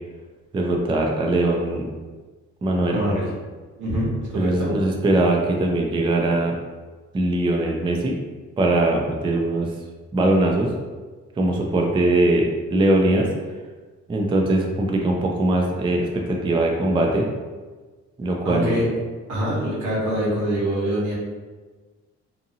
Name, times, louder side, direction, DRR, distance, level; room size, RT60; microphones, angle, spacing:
voice 1, 0.5-1.8 2.6-3.0 4.4-6.5 7.1-8.1 8.6-9.7 10.1-10.7 11.4-12.4 12.7-13.3 14.1-17.2 18.2-18.8, right 2 dB, 15° right, 1 dB, 0.4 m, -21 dB
voice 2, 2.9-3.3 3.8-4.7 18.4-18.9 19.3-21.1, equal, 80° right, -6 dB, 1.2 m, -24 dB
2.7 x 2.5 x 2.7 m, 1.3 s
cardioid pair, 90°, 30 cm